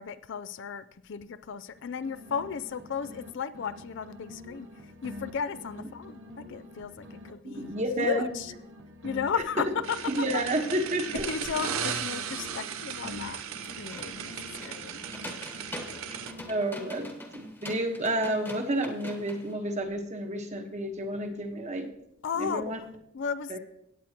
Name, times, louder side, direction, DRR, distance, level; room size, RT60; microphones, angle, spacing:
voice 1, 0.0-8.5 9.0-10.4 11.1-13.4 13.8-14.3 14.6-15.1 15.8-16.0 22.2-22.9 23.1-23.6, left 6 dB, 55° left, 15 dB, 0.4 m, -35 dB
sound 1, 1.7-3.3 3.5-7.3 7.5-11.3 11.5-15.3 15.5-17.0, left 1 dB, 55° right, 1.1 m, -47 dB
voice 2, 7.4-8.3 9.3-9.4 10.2-11.2 16.5-21.9 22.4-22.8 23.5-23.6, right 1 dB, 35° right, 5 dB, 1.2 m, -30 dB
sound 2, 9.8-16.3, right 7 dB, 75° right, 0.8 m, -36 dB
sound 3, 13.3-19.5, left 1 dB, 10° left, 1.2 m, -44 dB
17.0 x 8.5 x 2.9 m, 0.78 s
head